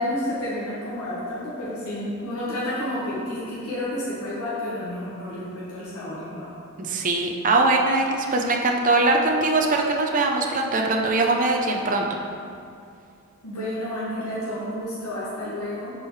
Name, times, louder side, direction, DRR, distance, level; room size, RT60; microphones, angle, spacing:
voice 1, 0.0-6.5 13.4-15.9, left 1 dB, 85° left, -9 dB, 1.4 m, -30 dB
voice 2, 6.8-12.1, right 2 dB, 35° right, 1 dB, 0.6 m, -21 dB
10.5 x 4.6 x 3.2 m, 2.4 s
head